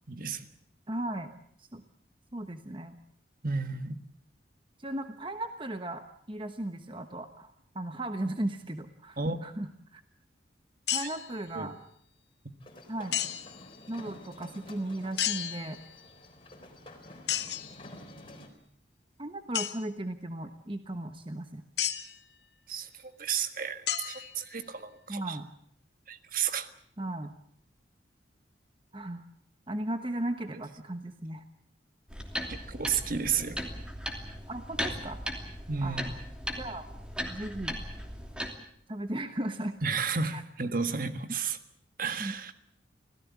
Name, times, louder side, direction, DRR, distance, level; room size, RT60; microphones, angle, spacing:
voice 1, 0.1-0.5 3.4-4.0 9.2-9.4 11.5-11.7 22.7-25.4 26.1-26.7 32.5-33.6 35.7-36.1 39.8-41.6 42.0-42.5, right 5 dB, 50° right, 9 dB, 1.6 m, -32 dB
voice 2, 0.9-1.3 1.6-1.8 2.3-3.0 4.8-10.0 10.9-11.7 12.9-13.2 13.9-15.8 19.2-21.6 25.1-25.5 27.0-27.3 28.9-29.2 29.7-31.4 34.5-35.2 35.8-36.2 36.6-36.9 37.3-37.8 38.9-39.7 40.3-40.4 42.2-42.3, right 1 dB, 25° right, 8 dB, 1.1 m, -36 dB
sound 1, 10.9-11.4 13.1-13.7 15.2-16.0 17.3-17.8 19.5-19.8 21.8-22.2 23.9-24.7, left 11 dB, 65° left, 1.5 m, -33 dB
sound 2, 12.6-18.5, left 1 dB, 30° left, 4.0 m, -50 dB
sound 3, 32.1-38.5, equal, 5° right, 2.9 m, -37 dB
26.0 x 17.0 x 8.4 m, 0.67 s
head